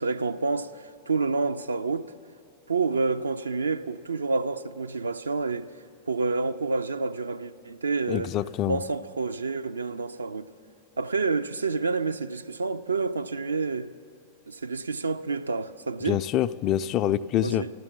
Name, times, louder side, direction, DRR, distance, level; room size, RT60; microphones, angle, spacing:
voice 1, 0.0-2.1 2.7-5.7 6.1-8.3 8.7-10.5 11.0-13.9 14.5-16.2 17.4-17.7, right 4 dB, 80° right, 0.4 m, -28 dB
voice 2, 8.1-8.8 16.0-17.6, left 12 dB, 35° left, 0.3 m, -26 dB
13.5 x 12.5 x 7.2 m
figure-of-eight pair, 95°, 0 cm